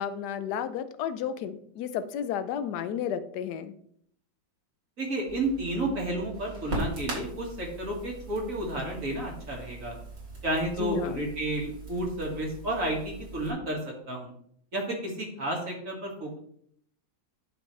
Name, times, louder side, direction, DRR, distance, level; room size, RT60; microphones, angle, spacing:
voice 1, 0.0-3.7 10.8-11.3, left 8 dB, 70° left, 12 dB, 1.2 m, -32 dB
voice 2, 5.0-10.0 10.4-14.3 14.7-16.4, right 1 dB, 45° right, -1 dB, 2.3 m, -31 dB
Crackle, 5.3-13.5, right 2 dB, 85° right, 3.3 m, -40 dB
10.0 x 6.1 x 3.2 m, 0.66 s
omnidirectional pair, 2.0 m